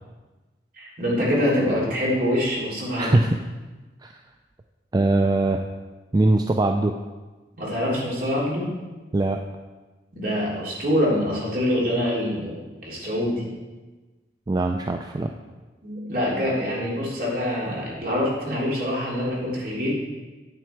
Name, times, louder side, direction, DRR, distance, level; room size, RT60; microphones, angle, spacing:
voice 1, 0.8-3.2 7.6-8.7 10.1-13.4 15.8-19.9, left 1 dB, 55° right, -5 dB, 3.2 m, -25 dB
voice 2, 3.0-3.4 4.0-4.1 4.9-5.6 6.1-7.0 9.1-9.4 14.5-15.3, right 2 dB, 20° right, 4 dB, 0.4 m, -21 dB
9.4 x 7.9 x 4.6 m, 1.2 s
head